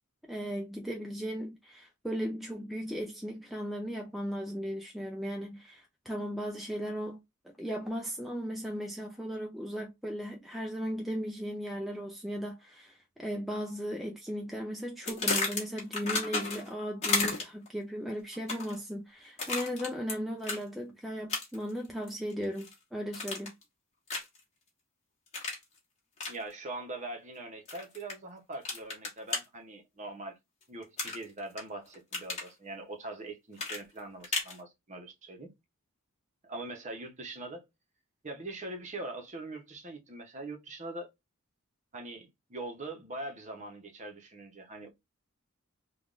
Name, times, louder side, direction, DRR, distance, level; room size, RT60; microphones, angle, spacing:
voice 1, 0.3-7.2 7.4-23.5, equal, ahead, 0.3 m, -36 dB
Stepping On a Can, 15.1-16.7 17.0-17.7 18.3-18.8 19.4-20.1 20.4-20.6 21.3-21.7 22.1-22.7 23.1-23.6 24.1-24.4 25.3-25.6 26.2-26.4 27.7-28.1 28.6-29.4 31.0-31.6 31.9-32.5 33.6-34.6, left 3 dB, 30° left, 1.1 m, -33 dB
voice 2, 26.3-30.4 30.7-35.5 36.5-37.6 38.2-41.1 41.9-44.9, right 2 dB, 35° right, 0.7 m, -42 dB
3.3 x 2.3 x 2.4 m
head